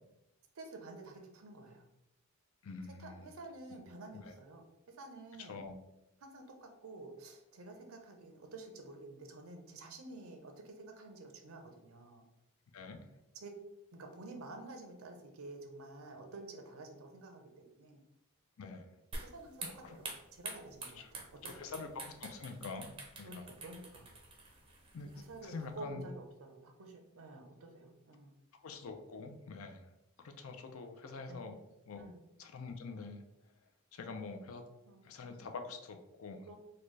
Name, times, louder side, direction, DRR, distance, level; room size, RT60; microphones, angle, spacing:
voice 1, 0.5-1.8 3.0-5.6 6.2-12.2 13.3-13.5 13.9-18.0 19.2-20.1 20.3-21.7 23.2-24.1 25.1-28.4 31.3-31.4 31.9-32.2 34.8-35.0 36.5-36.6, right 2 dB, 65° right, 4 dB, 0.6 m, -50 dB
voice 2, 2.6-3.3 4.1-4.3 5.4-5.8 12.7-13.0 18.6-18.9 19.6-20.0 20.8-21.1 21.4-23.4 24.9-26.0 28.6-29.9 30.2-31.6 31.9-32.0 32.4-33.2 33.9-34.6 35.0-36.4, left 4 dB, 65° left, 5 dB, 0.5 m, -46 dB
sound 1, 19.1-25.7, right 2 dB, 25° right, 0.5 m, -48 dB
3.8 x 2.2 x 3.1 m, 0.89 s
head